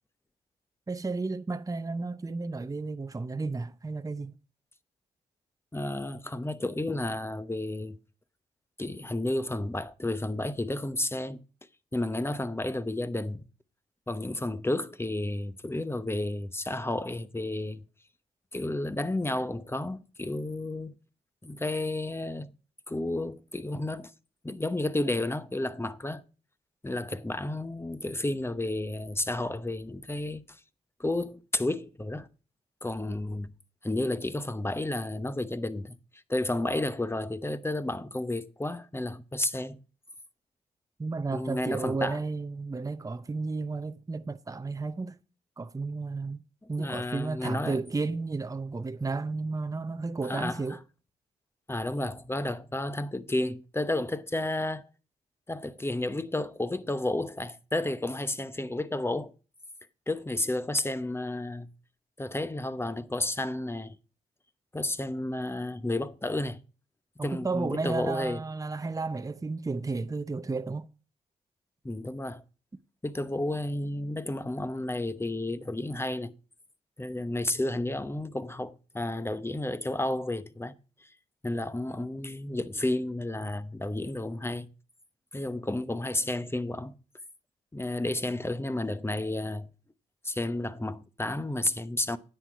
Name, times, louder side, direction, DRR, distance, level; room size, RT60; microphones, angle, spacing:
voice 1, 0.9-4.3 41.0-45.2 45.6-46.4 46.7-50.8 67.2-70.9, right 3 dB, 20° right, 0.7 m, -32 dB
voice 2, 5.7-8.0 8.8-11.4 11.9-13.4 14.1-17.9 18.5-21.0 21.4-22.5 22.9-24.1 24.4-26.2 26.8-30.6 31.0-32.3 32.8-33.5 33.8-39.8 41.3-42.2 46.6-47.8 50.2-50.8 51.7-54.9 55.5-59.3 60.1-61.7 62.2-64.0 64.7-66.6 67.2-68.4 71.8-72.4 73.0-76.3 77.0-80.7 81.0-81.1 81.4-84.7 85.3-87.0 87.7-89.7 90.2-92.2, left 2 dB, 15° left, 0.9 m, -32 dB
10.0 x 7.5 x 4.7 m
supercardioid pair, 50°, 16 cm